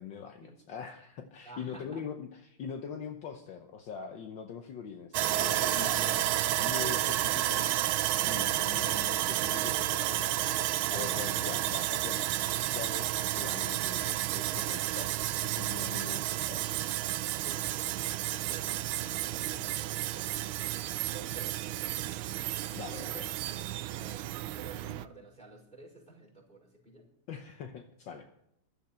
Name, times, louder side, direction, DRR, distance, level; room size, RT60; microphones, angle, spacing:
voice 1, 0.0-6.3 6.6-7.8 8.2-15.1 15.4-16.6 22.7-23.3 27.3-28.3, left 7 dB, 65° left, 5 dB, 1.6 m, -42 dB
voice 2, 1.4-2.0 5.6-6.3 6.8-7.4 17.4-20.1 21.1-22.3 23.9-24.3 24.5-27.0, right 3 dB, 5° left, 0 dB, 5.7 m, -51 dB
Sawing, 5.1-25.1, right 13 dB, 80° right, 1.4 m, -31 dB
15.0 x 12.0 x 4.4 m, 0.78 s
omnidirectional pair, 2.3 m